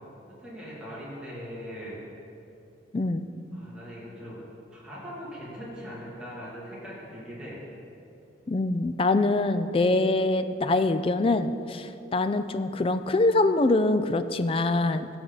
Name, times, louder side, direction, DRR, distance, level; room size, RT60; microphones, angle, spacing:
voice 1, 0.3-2.0 3.5-4.4 4.7-7.6, equal, 5° right, -9 dB, 2.5 m, -40 dB
voice 2, 2.9-3.3 8.5-15.1, left 2 dB, 30° left, 11 dB, 0.3 m, -24 dB
16.0 x 6.0 x 4.0 m, 2.8 s
head